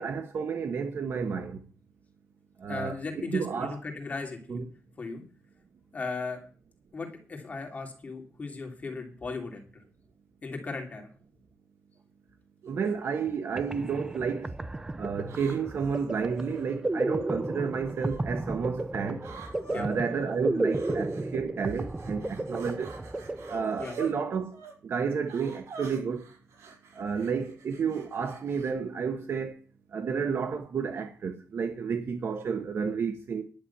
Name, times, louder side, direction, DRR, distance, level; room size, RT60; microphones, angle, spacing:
voice 1, 0.0-1.6 2.6-3.0 3.3-3.8 4.5-4.7 12.7-14.5 15.0-19.2 19.7-22.9 23.5-26.2 26.9-29.6 29.9-33.4, right 6 dB, 50° right, 1.2 m, -31 dB
voice 2, 2.7-4.6 5.0-5.2 5.9-6.4 6.9-9.8 10.4-11.1 19.7-19.9 23.8-24.0, left 4 dB, 30° left, 2.9 m, -37 dB
sound 1, 12.6-12.9 13.7-14.2 15.2-16.6 17.6-18.2 19.2-19.8 20.7-21.3 21.6-24.1 24.5-24.7 25.3-28.7, right 4 dB, 80° right, 4.8 m, -47 dB
sound 2, 13.3-13.4 13.6-24.2, right 2 dB, 15° right, 0.5 m, -34 dB
11.0 x 7.1 x 8.5 m
wide cardioid pair, 140°, 5 cm